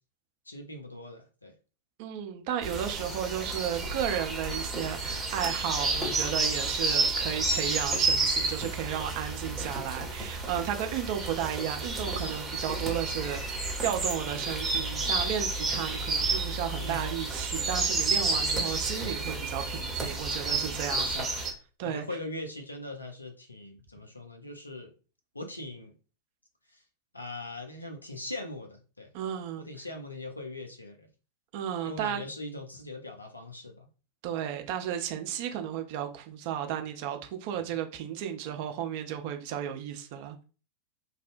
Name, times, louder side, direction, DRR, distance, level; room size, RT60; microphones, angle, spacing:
voice 1, 0.5-1.5 16.8-17.1 21.0-21.4 21.8-24.9 25.3-25.9 26.7-26.8 27.1-29.1 29.6-31.1 31.8-33.9 37.5-37.8, left 1 dB, 85° left, 0.5 m, -41 dB
voice 2, 2.0-21.5 21.8-22.0 29.1-29.7 31.5-32.2 34.2-40.4, right 10 dB, 45° right, 0.4 m, -34 dB
sound 1, 2.6-21.5, right 3 dB, 15° right, 0.8 m, -30 dB
2.6 x 2.0 x 2.5 m
figure-of-eight pair, 90°, 0 cm